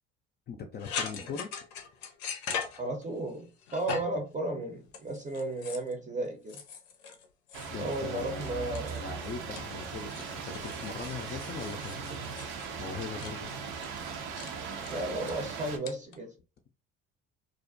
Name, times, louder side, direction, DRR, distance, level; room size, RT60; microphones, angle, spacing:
voice 1, 0.5-1.5 7.7-13.6, left 5 dB, 35° left, 0.4 m, -41 dB
sound 1, 0.8-3.3 3.6-4.3 4.9-5.9 6.5-8.1 8.4-9.2 9.6-13.3 13.8-14.0 14.4-14.5 14.8-15.3 15.9-16.1, left 6 dB, 80° left, 0.5 m, -40 dB
voice 2, 2.8-6.6 7.8-9.0 14.9-16.3, right 2 dB, 25° right, 0.6 m, -34 dB
sound 2, 7.5-15.8, right 6 dB, 70° right, 0.6 m, -39 dB
2.4 x 2.0 x 2.5 m
hypercardioid pair, 60°, 31 cm